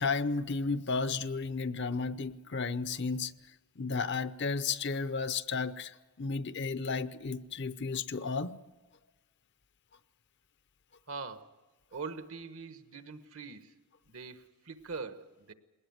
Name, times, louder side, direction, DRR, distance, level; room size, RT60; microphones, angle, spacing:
voice 1, 0.0-3.3 3.8-8.6, left 4 dB, 50° left, 0.6 m, -33 dB
voice 2, 11.1-11.6 11.9-13.7 14.1-15.5, right 4 dB, 65° right, 1.2 m, -43 dB
20.5 x 19.0 x 9.3 m
head